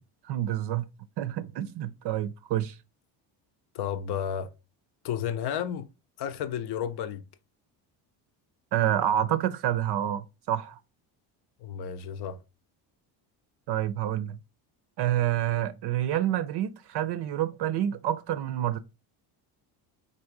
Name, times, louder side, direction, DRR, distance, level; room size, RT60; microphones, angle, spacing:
voice 1, 0.2-0.9 1.2-2.8 8.7-10.8 13.7-14.4 15.0-18.8, right 11 dB, 55° right, 0.5 m, -28 dB
voice 2, 3.7-4.5 5.0-5.9 6.2-7.2 11.6-12.4, left 9 dB, 55° left, 0.7 m, -32 dB
4.0 x 2.7 x 4.6 m
supercardioid pair, 85°, 48 cm